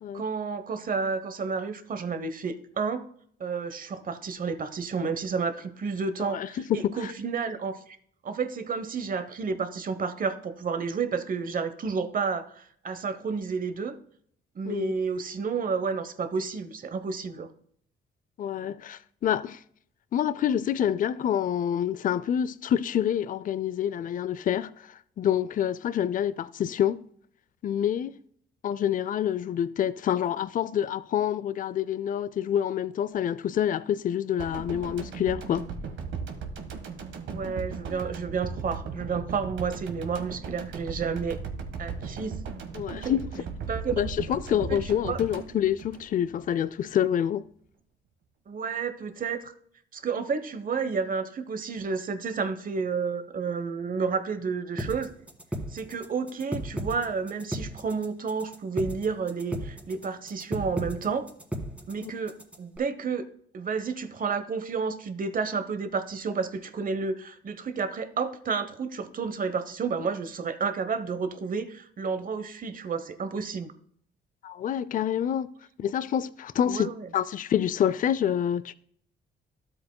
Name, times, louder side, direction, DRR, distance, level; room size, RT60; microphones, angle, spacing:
voice 1, 0.1-3.0 3.4-8.0 8.2-13.9 14.5-17.5 37.3-41.4 41.8-42.4 43.0-43.2 43.7-44.0 44.7-45.2 48.5-49.5 49.9-55.1 55.7-61.3 61.9-63.2 63.5-73.7 76.6-77.1, right 5 dB, 45° right, 0.9 m, -31 dB
voice 2, 6.2-7.1 14.7-14.9 18.4-19.6 20.1-27.0 27.6-28.1 28.6-35.6 42.7-43.2 44.0-47.4 62.0-62.1 74.4-75.5 75.8-78.7, left 10 dB, 45° left, 0.4 m, -27 dB
sound 1, 34.4-46.6 46.9-47.0, right 5 dB, 70° right, 1.5 m, -37 dB
sound 2, 54.8-62.8, equal, 5° right, 1.7 m, -35 dB
13.0 x 7.8 x 2.2 m
cardioid pair, 90°, 20 cm